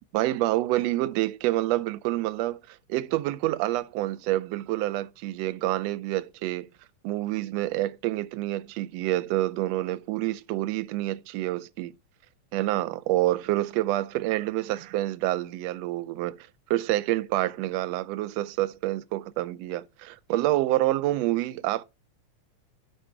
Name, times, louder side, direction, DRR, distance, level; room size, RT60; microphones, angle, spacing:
voice 1, 0.1-6.7 7.0-11.9 12.5-21.8, right 16 dB, 80° right, 1.6 m, -27 dB
11.0 x 4.0 x 4.7 m
omnidirectional pair, 3.3 m